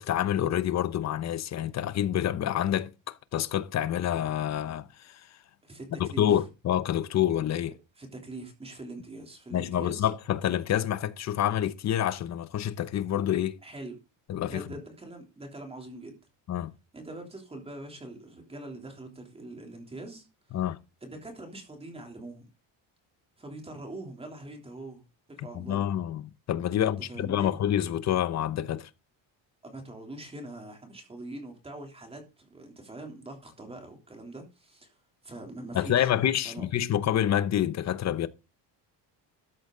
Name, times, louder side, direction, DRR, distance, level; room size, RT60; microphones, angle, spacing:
voice 1, 0.0-5.2 6.0-7.7 9.5-13.6 14.3-14.6 16.5-16.7 20.5-20.8 25.5-26.2 26.5-28.9 35.7-38.3, left 11 dB, 40° left, 0.9 m, -27 dB
voice 2, 5.6-6.4 8.0-10.1 13.6-14.0 14.5-16.2 16.9-20.6 21.0-22.5 23.4-25.0 25.3-25.9 26.8-27.6 29.6-35.0 35.2-36.1 36.4-36.6, right 2 dB, 15° right, 3.3 m, -43 dB
13.5 x 8.7 x 3.9 m
cardioid pair, 170°, 43 cm